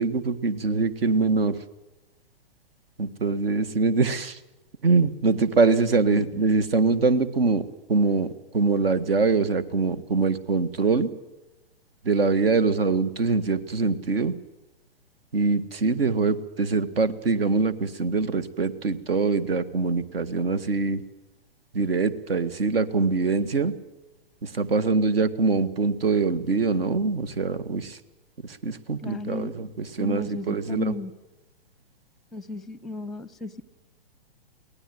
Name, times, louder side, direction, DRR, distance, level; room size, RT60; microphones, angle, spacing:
voice 1, 0.0-1.6 3.0-4.4 4.8-7.6 7.9-8.3 8.5-11.1 12.1-14.3 15.3-21.0 21.7-23.7 24.4-28.0 28.4-30.9, right 4 dB, 75° right, 14 dB, 1.7 m, -23 dB
voice 2, 6.1-6.4 29.0-29.6 30.0-31.1 32.3-33.6, left 3 dB, ahead, 19 dB, 0.7 m, -35 dB
23.5 x 18.5 x 7.8 m, 1.0 s
figure-of-eight pair, 120°, 30 cm